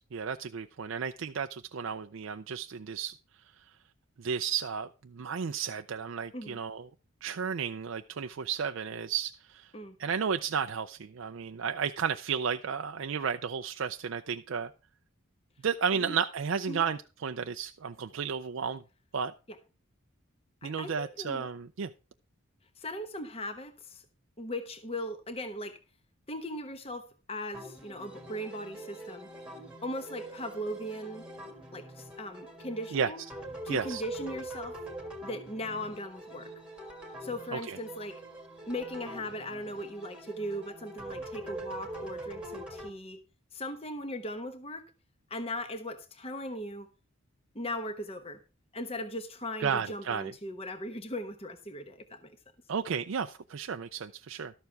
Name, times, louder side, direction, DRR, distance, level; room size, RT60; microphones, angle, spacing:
voice 1, 0.1-3.1 4.2-6.9 7.2-9.7 10.0-14.7 15.6-18.8 19.1-19.3 20.6-21.9 32.9-33.1 33.7-34.0 37.5-37.8 49.6-50.3 52.7-54.5, right 6 dB, 65° right, 0.4 m, -33 dB
voice 2, 20.6-21.5 22.8-24.0 24.4-25.8 26.3-29.3 29.8-31.2 31.7-33.2 33.6-34.8 35.2-36.5 37.2-38.2 38.7-43.2 43.5-44.9 45.3-46.9 47.5-48.4 48.7-52.4, left 1 dB, 25° left, 1.0 m, -38 dB
sound 1, 27.5-42.9, right 1 dB, 5° right, 1.6 m, -44 dB
12.5 x 7.1 x 4.6 m
head